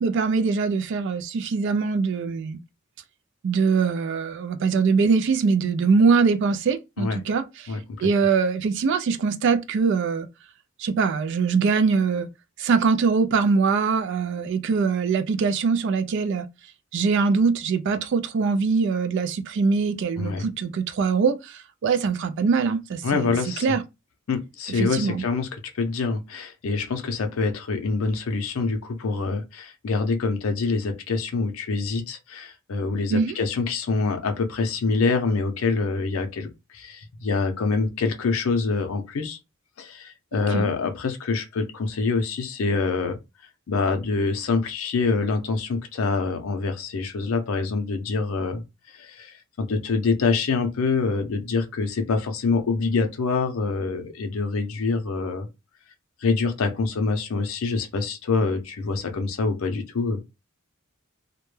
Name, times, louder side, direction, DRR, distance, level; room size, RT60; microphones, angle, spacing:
voice 1, 0.0-2.6 3.4-10.3 10.8-12.3 12.6-16.5 16.9-23.8 24.8-25.2 33.1-33.4 40.3-40.7, right 5 dB, 60° right, 0.3 m, -23 dB
voice 2, 7.7-8.1 20.2-20.5 23.0-23.7 24.3-25.5 25.7-36.5 36.7-39.4 39.8-43.2 43.7-48.6 49.0-55.5 56.2-60.2, left 4 dB, 75° left, 0.5 m, -25 dB
2.1 x 2.1 x 3.1 m
head